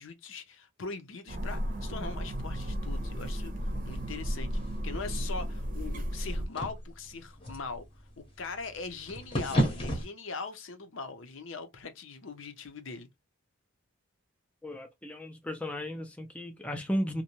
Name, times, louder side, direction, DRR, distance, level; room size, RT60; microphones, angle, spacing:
voice 1, 0.0-7.8 8.2-13.1, left 4 dB, 70° left, 0.6 m, -41 dB
sound 1, 1.3-6.5, equal, 40° right, 0.6 m, -34 dB
sound 2, 3.2-10.1, equal, 25° left, 0.8 m, -36 dB
voice 2, 14.6-17.2, equal, 5° left, 0.4 m, -35 dB
2.6 x 2.1 x 2.8 m
head